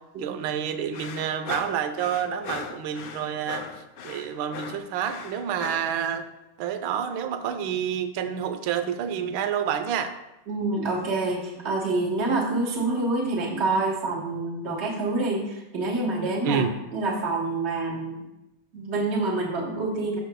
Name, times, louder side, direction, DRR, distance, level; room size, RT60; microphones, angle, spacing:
voice 1, 0.2-3.7 4.0-6.3 6.6-10.1 16.4-16.7, right 8 dB, 70° right, 9 dB, 1.4 m, -28 dB
sound 1, 0.9-6.0, left 6 dB, 80° left, 0.7 m, -38 dB
voice 2, 10.5-16.6 16.9-18.2 18.7-20.2, right 2 dB, 35° right, -3 dB, 1.4 m, -27 dB
17.0 x 6.2 x 2.2 m, 0.94 s
omnidirectional pair, 2.4 m